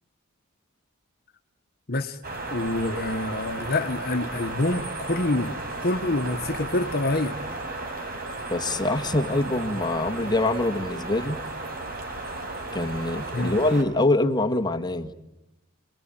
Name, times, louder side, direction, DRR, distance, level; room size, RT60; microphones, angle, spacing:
sound 1, 2.2-13.8, right 2 dB, 45° right, 4.8 m, -34 dB
voice 1, 2.5-7.4 13.3-13.5, left 2 dB, 50° left, 1.3 m, -26 dB
voice 2, 8.5-11.4 12.7-15.1, left 2 dB, 20° left, 1.7 m, -24 dB
30.0 x 21.0 x 9.0 m
head